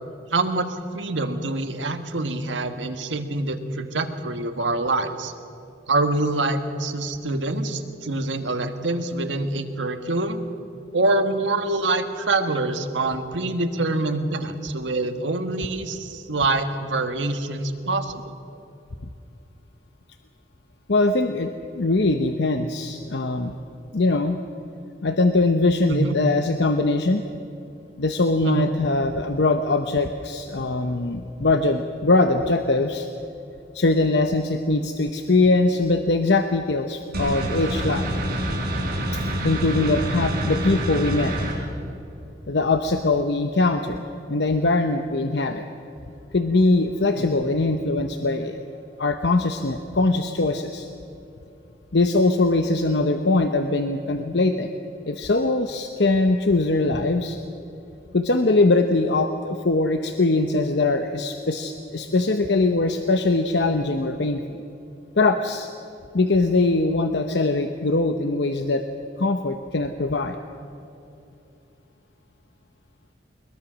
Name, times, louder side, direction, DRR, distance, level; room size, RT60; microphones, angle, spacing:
voice 1, 0.3-5.3 5.9-10.4 10.9-18.2 25.9-26.1 28.4-28.7 40.1-40.3 47.2-47.3, right 2 dB, 90° right, 7 dB, 1.5 m, -25 dB
voice 2, 20.9-23.5 23.9-24.4 25.0-27.2 28.0-33.1 33.7-38.1 39.4-41.4 42.5-45.6 46.3-48.6 49.0-50.9 51.9-54.7 55.1-57.4 58.1-64.6 65.2-65.7 66.1-68.8 69.2-70.4, left 2 dB, 70° left, 7 dB, 0.9 m, -22 dB
sound 1, 37.1-41.5, right 1 dB, 55° right, 4.6 m, -26 dB
21.5 x 21.5 x 6.3 m, 2.7 s
head